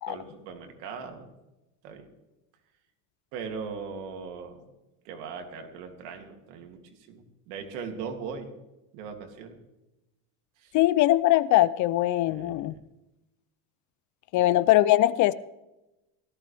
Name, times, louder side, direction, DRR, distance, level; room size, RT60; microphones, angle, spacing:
voice 1, 0.1-1.3 1.8-2.1 3.3-4.6 5.0-6.8 7.1-8.5 8.9-9.6 10.6-10.7 12.3-12.8 14.4-14.5, right 5 dB, 80° right, 4 dB, 2.9 m, -39 dB
voice 2, 10.7-12.7 14.3-15.3, left 15 dB, 40° left, 18 dB, 0.4 m, -21 dB
17.5 x 14.5 x 3.4 m, 0.98 s
cardioid pair, 135°, 48 cm